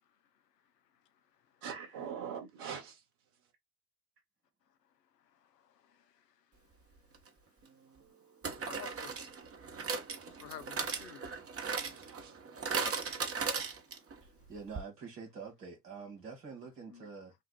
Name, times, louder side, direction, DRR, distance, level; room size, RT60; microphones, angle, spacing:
voice 1, 1.6-3.0 11.0-12.3, right 7 dB, 65° right, 1.8 m, -44 dB
voice 2, 5.5-6.2 8.6-9.2 10.3-11.3 16.9-17.0, left 8 dB, 85° left, 0.8 m, -50 dB
sound 1, 7.1-7.3 8.4-14.2 14.5-14.6 14.8-14.9, right 5 dB, 30° right, 1.1 m, -37 dB
voice 3, 14.2-17.3, right 5 dB, 85° right, 2.1 m, -47 dB
6.3 x 2.5 x 2.3 m
hypercardioid pair, 65°, 47 cm